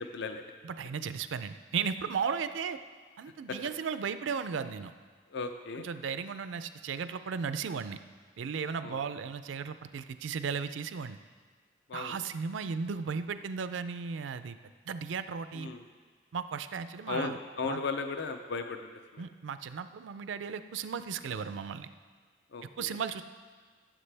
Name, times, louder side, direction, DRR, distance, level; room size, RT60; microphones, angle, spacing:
voice 1, 0.1-0.4 5.3-5.9 8.8-9.0 11.9-12.2 15.5-15.8 17.1-19.2 22.5-23.0, left 4 dB, 65° left, 7 dB, 0.5 m, -36 dB
voice 2, 0.6-2.8 3.2-4.9 5.8-8.0 8.4-11.2 11.9-14.6 14.9-15.7 16.3-17.4 17.6-17.8 19.2-21.9 22.8-23.2, right 6 dB, 80° right, 11 dB, 0.4 m, -35 dB
15.0 x 7.3 x 3.4 m, 1.5 s
head